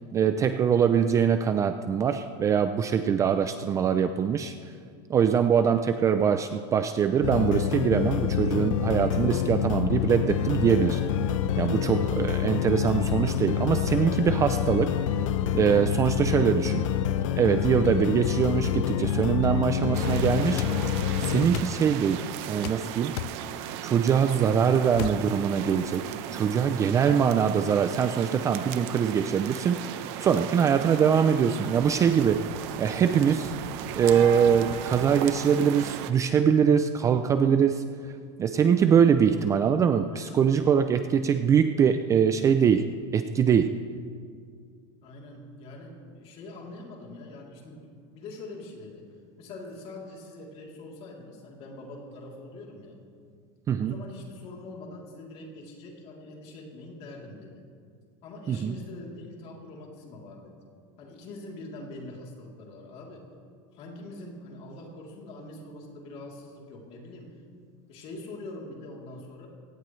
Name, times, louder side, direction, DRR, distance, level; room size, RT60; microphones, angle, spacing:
voice 1, 0.1-4.5 5.1-11.0 11.6-14.9 15.5-16.8 17.4-20.6 21.2-23.2 23.8-32.5 32.8-33.5 34.0-38.1 38.4-43.8 53.7-53.9 58.5-58.7, right 7 dB, 20° right, 9 dB, 0.4 m, -23 dB
sound 1, 7.2-21.5, left 9 dB, 90° left, 0.7 m, -27 dB
voice 2, 11.5-11.9 40.1-40.8 45.0-49.1 49.4-53.0 53.8-57.6 58.2-60.6 61.0-63.3 63.7-67.4 67.9-69.5, left 2 dB, 40° left, -1 dB, 3.2 m, -44 dB
sound 2, 19.9-36.1, right 10 dB, 60° right, 0.9 m, -36 dB
sound 3, 20.6-20.8 21.5-21.8 22.6-22.8 23.2-23.4 25.0-25.2, left 17 dB, 60° left, 0.4 m, -33 dB
22.0 x 17.5 x 3.2 m, 2.2 s
supercardioid pair, 160°, 16 cm